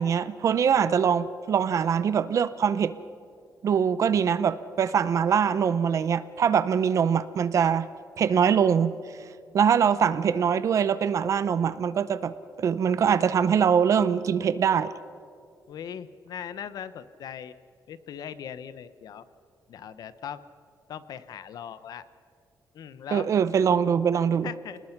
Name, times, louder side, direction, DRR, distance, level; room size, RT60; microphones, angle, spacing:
voice 1, 0.0-2.9 3.6-7.9 8.2-9.0 9.5-12.3 12.6-14.9 23.1-24.5, right 7 dB, 50° right, 14 dB, 0.7 m, -23 dB
voice 2, 15.7-17.5 17.9-19.2 19.7-20.4 20.9-22.0 22.7-23.3 24.4-24.8, left 8 dB, 70° left, 14 dB, 1.0 m, -39 dB
29.0 x 20.0 x 6.0 m, 2.3 s
wide cardioid pair, 175°, 7 cm